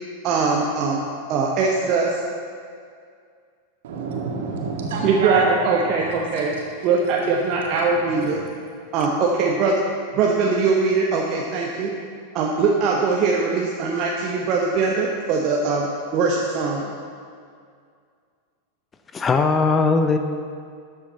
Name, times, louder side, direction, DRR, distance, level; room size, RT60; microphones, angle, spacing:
voice 1, 0.2-1.0 1.3-2.2 5.0-6.5 6.8-8.4 8.9-9.8 10.1-11.9 12.3-16.8, right 4 dB, 40° right, 1.1 m, -21 dB
voice 2, 3.8-6.6 7.5-7.6 7.9-8.5, right 3 dB, 55° right, 2.2 m, -29 dB
voice 3, 19.1-20.2, left 4 dB, 20° left, 0.7 m, -19 dB
13.5 x 9.4 x 4.2 m
figure-of-eight pair, 90°, 0 cm